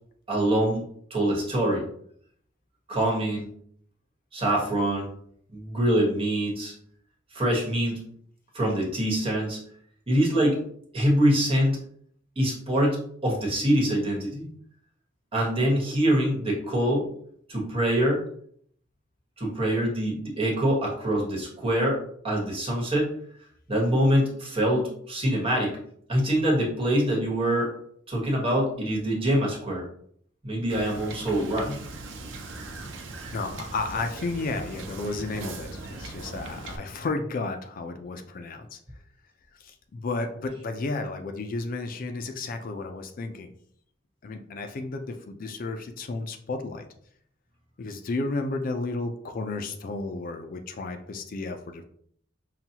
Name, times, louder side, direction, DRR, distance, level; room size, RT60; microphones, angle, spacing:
voice 1, 0.3-0.8 1.1-1.8 2.9-3.5 4.3-5.1 5.5-6.7 7.3-8.0 8.5-9.6 10.1-10.6 10.9-11.8 12.4-14.5 15.3-17.0 17.5-18.2 19.4-23.1 23.7-25.8 26.1-27.7 28.1-29.8 30.4-31.8, right 1 dB, 30° right, -2 dB, 1.2 m, -24 dB
Wind / Boat Water vehicle, 30.7-36.8, right 2 dB, 90° right, 0.6 m, -39 dB
voice 2, 33.3-38.8 39.5-43.5 44.2-46.9 47.8-51.8, left 3 dB, 50° left, 6 dB, 0.4 m, -32 dB
5.7 x 2.3 x 2.8 m, 0.64 s
head